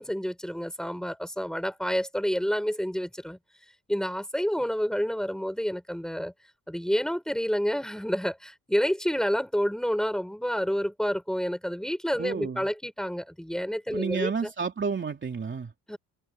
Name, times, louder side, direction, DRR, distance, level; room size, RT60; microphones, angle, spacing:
voice 1, 0.0-3.4 3.9-6.3 6.7-14.3 15.9-16.0, equal, ahead, 6.7 m, -29 dB
voice 2, 12.2-12.7 13.9-15.7, right 5 dB, 25° right, 3.2 m, -31 dB
cardioid pair, 130°, 41 cm